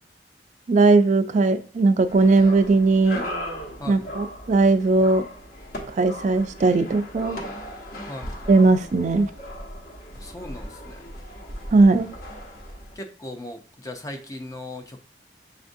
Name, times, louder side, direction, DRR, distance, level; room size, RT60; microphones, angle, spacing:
voice 1, 0.7-3.2 3.9-5.2 6.0-7.4 8.5-9.3 11.7-12.1, right 3 dB, 40° right, 9 dB, 0.4 m, -18 dB
sound 1, 2.1-13.0, equal, 50° left, 1.0 m, -37 dB
voice 2, 10.1-11.0 13.0-15.0, left 1 dB, 20° left, 5 dB, 0.5 m, -38 dB
7.0 x 2.5 x 2.6 m, 0.40 s
head